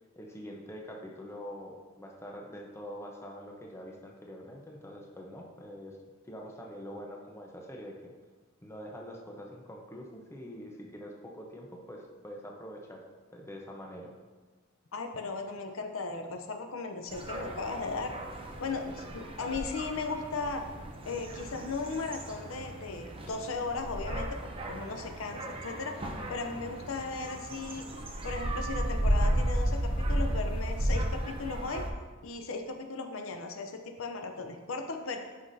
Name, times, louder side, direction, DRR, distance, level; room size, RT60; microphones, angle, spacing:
voice 1, 0.2-6.0 6.2-8.1 8.6-13.0 13.3-14.1, equal, 15° left, -1 dB, 0.8 m, -45 dB
voice 2, 14.9-18.1 18.6-20.6 21.0-24.4 24.7-26.0 26.3-27.8 28.2-31.8 32.2-35.2, left 3 dB, 75° left, 5 dB, 0.7 m, -36 dB
sound 1, 17.1-31.9, right 1 dB, 25° right, 0.7 m, -34 dB
9.4 x 5.8 x 2.7 m, 1.3 s
head